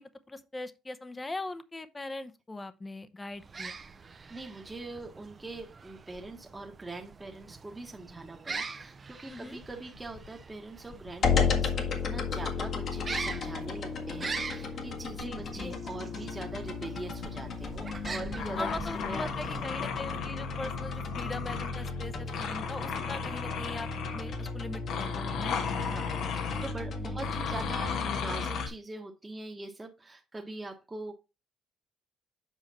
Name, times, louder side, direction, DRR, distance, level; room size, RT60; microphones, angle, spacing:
voice 1, 0.0-3.8 9.3-9.6 15.2-15.7 18.6-23.9 24.1-25.6 27.0-27.2, left 2 dB, 15° left, 0.8 m, -40 dB
sound 1, 3.3-20.1, right 4 dB, 35° right, 0.7 m, -43 dB
voice 2, 3.9-18.7 18.9-19.6 25.8-31.1, right 2 dB, 15° right, 1.3 m, -43 dB
sound 2, 9.6-10.5 10.8-11.8 13.2-13.7 15.4-15.7 16.3-16.6 17.0-17.1 17.9-22.0 22.3-24.5 24.9-26.7 27.2-28.7, left 7 dB, 75° left, 1.3 m, -36 dB
sound 3, 11.2-28.7, left 5 dB, 55° left, 1.6 m, -34 dB
7.4 x 5.0 x 4.2 m
cardioid pair, 100°, 0 cm